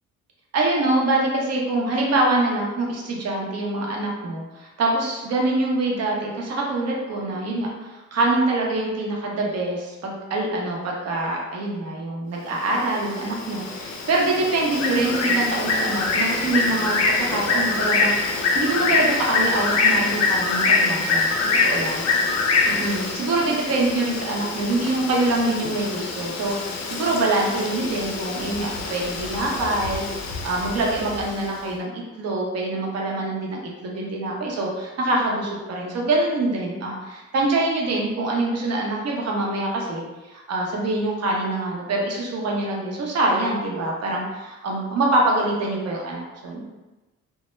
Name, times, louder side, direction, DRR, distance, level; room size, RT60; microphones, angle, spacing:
voice 1, 0.5-21.3 21.6-22.0 22.7-46.7, right 2 dB, 55° right, -2 dB, 0.7 m, -25 dB
Bird, 12.7-31.5, left 3 dB, 55° left, 0.4 m, -24 dB
2.2 x 2.1 x 3.0 m, 1.1 s
cardioid pair, 90°, 30 cm